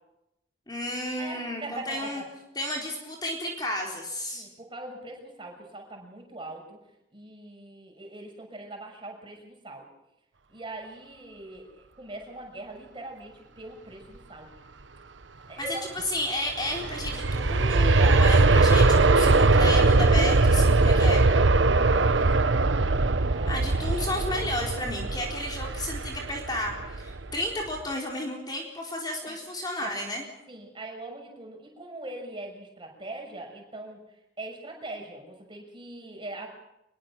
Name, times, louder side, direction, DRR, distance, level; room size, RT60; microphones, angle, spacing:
voice 1, 0.7-2.2 2.6-4.4 15.6-15.7 16.1-21.2 23.5-30.2, left 1 dB, 20° left, 0 dB, 4.2 m, -32 dB
voice 2, 1.2-2.2 4.3-6.8 7.1-9.9 10.5-14.5 15.5-15.9 19.1-19.4 20.8-22.7 23.3-24.0 29.2-29.4 29.8-29.9 30.5-34.0 34.4-36.5, right 2 dB, 25° right, 2 dB, 6.6 m, -41 dB
Aircraft, 16.5-27.3 27.8-27.9, right 3 dB, 85° right, 1.1 m, -21 dB
25.0 x 22.0 x 6.2 m, 0.86 s
head